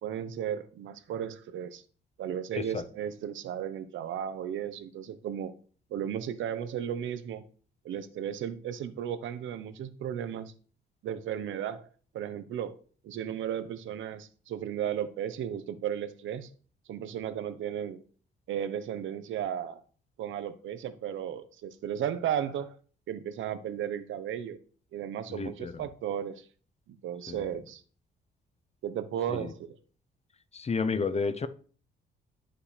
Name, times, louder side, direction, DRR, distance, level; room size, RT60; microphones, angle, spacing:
voice 1, 0.0-1.8 2.2-5.5 5.9-7.4 7.8-10.5 11.0-11.9 12.1-12.8 13.0-16.5 16.9-18.0 18.5-19.8 20.2-22.8 23.1-24.6 24.9-26.4 26.9-27.8 28.8-29.8, right 9 dB, 75° right, 1.0 m, -35 dB
voice 2, 2.5-2.8 25.3-25.9 27.3-27.5 29.3-29.5 30.5-31.5, left 4 dB, 35° left, 0.8 m, -31 dB
12.0 x 5.7 x 3.3 m
cardioid pair, 90°, 20 cm